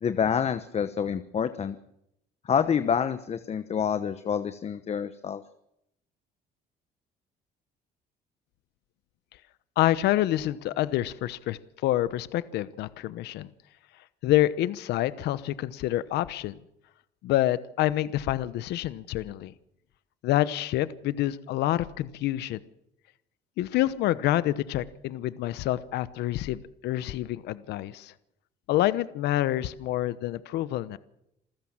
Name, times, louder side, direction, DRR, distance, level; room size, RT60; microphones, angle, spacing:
voice 1, 0.0-1.8 2.4-5.4, left 7 dB, 40° left, 11 dB, 1.0 m, -27 dB
voice 2, 9.8-13.5 14.2-16.6 17.2-19.5 20.2-22.6 23.6-28.1 28.7-31.0, left 14 dB, 80° left, 15 dB, 1.0 m, -27 dB
27.0 x 15.0 x 7.4 m, 0.81 s
cardioid pair, 110°, 17 cm